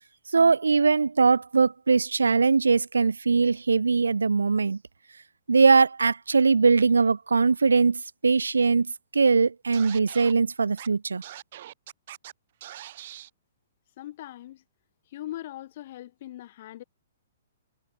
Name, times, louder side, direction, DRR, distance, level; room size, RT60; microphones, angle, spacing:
voice 1, 0.3-4.8 5.5-11.2, right 4 dB, 85° right, 0.3 m, -21 dB
Scratching (performance technique), 9.7-10.3 10.8-10.9 11.2-12.3 12.6-13.3, right 13 dB, 55° right, 5.2 m, -42 dB
voice 2, 14.0-14.6 15.1-16.8, left 14 dB, 50° left, 2.0 m, -40 dB
hypercardioid pair, 125°, 0 cm